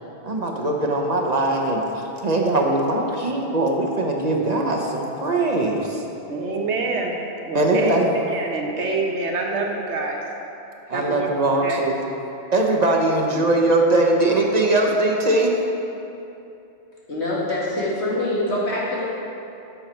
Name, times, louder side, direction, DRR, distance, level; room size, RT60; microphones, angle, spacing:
voice 1, 0.2-6.0 7.5-8.1 10.9-12.0 12.5-15.6, right 2 dB, 40° right, 1 dB, 1.0 m, -21 dB
voice 2, 6.3-7.2 7.4-10.2 10.9-11.3 11.6-11.8, right 3 dB, 90° right, 0 dB, 1.4 m, -26 dB
voice 3, 17.1-19.1, left 1 dB, 80° left, -6 dB, 2.3 m, -24 dB
11.0 x 6.9 x 4.5 m, 2.8 s
omnidirectional pair, 1.1 m